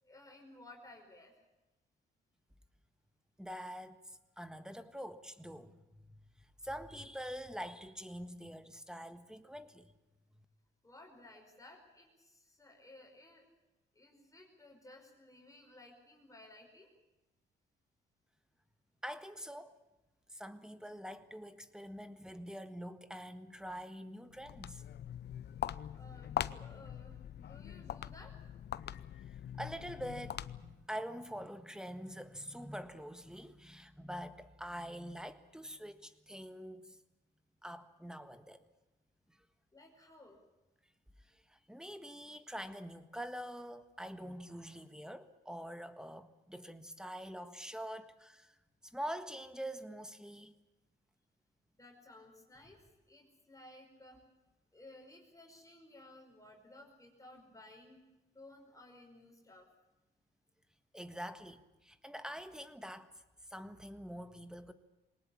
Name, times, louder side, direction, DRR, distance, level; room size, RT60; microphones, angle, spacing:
voice 1, 0.0-1.3 10.8-13.5 14.0-16.9 25.9-28.5 39.7-40.4 51.7-54.2 54.7-58.0 58.3-59.7, left 2 dB, 15° left, 5.1 m, -57 dB
voice 2, 3.4-9.9 10.4-10.5 19.0-19.8 20.3-24.8 28.0-28.1 29.1-37.0 37.6-38.6 39.3-39.4 41.2-50.5 60.9-64.7, equal, 5° right, 1.5 m, -45 dB
Walk footsteps, 24.3-30.9, left 10 dB, 55° left, 0.7 m, -42 dB
22.0 x 19.0 x 8.6 m
cardioid pair, 90°, 20 cm